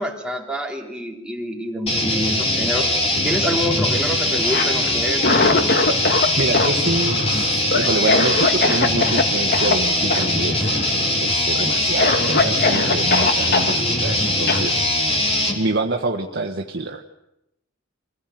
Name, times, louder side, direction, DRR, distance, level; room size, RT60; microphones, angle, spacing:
voice 1, 0.0-5.3, equal, 5° right, 0 dB, 3.5 m, -27 dB
sound 1, 1.9-15.6, left 1 dB, 30° left, 4.0 m, -21 dB
Cough, 4.4-6.3 6.5-9.2 9.5-9.7 10.1-10.3 10.6-11.1 11.5-11.6 12.0-13.7 14.5-14.6, left 3 dB, 50° left, 1.7 m, -21 dB
voice 2, 6.4-7.5 7.8-14.9 15.5-17.0, right 2 dB, 55° right, 2 dB, 1.4 m, -26 dB
Bell, 7.8-12.9, right 1 dB, 85° left, 5.4 m, -40 dB
25.5 x 17.5 x 9.3 m, 0.88 s
head